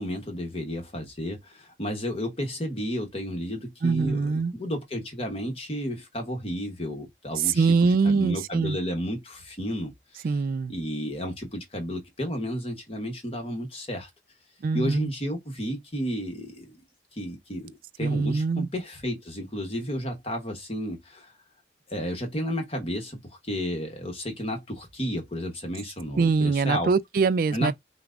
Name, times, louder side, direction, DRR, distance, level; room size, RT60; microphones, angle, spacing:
voice 1, 0.0-10.3 10.7-14.1 14.7-16.7 17.1-21.3 21.9-26.9 27.5-27.7, equal, 35° left, 1.0 m, -32 dB
voice 2, 3.8-4.5 7.5-8.8 10.2-10.7 14.6-15.1 18.0-18.7 26.2-27.7, right 4 dB, 50° right, 0.3 m, -23 dB
5.8 x 2.1 x 2.4 m
head